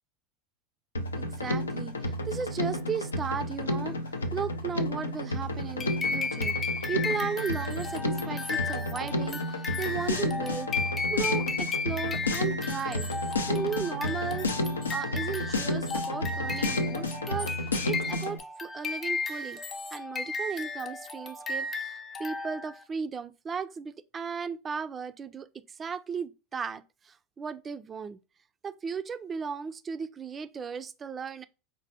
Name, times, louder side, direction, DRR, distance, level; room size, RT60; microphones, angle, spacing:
Drum kit, 0.9-18.4, left 1 dB, 85° left, 0.4 m, -31 dB
voice 1, 1.2-10.7 11.1-13.1 13.5-14.5 14.9-17.5 17.8-19.6 19.9-28.2 28.6-31.5, right 6 dB, 25° right, 0.3 m, -36 dB
sound 1, 5.8-22.8, left 4 dB, 25° left, 0.6 m, -34 dB
4.1 x 2.1 x 2.7 m
hypercardioid pair, 85°, 0 cm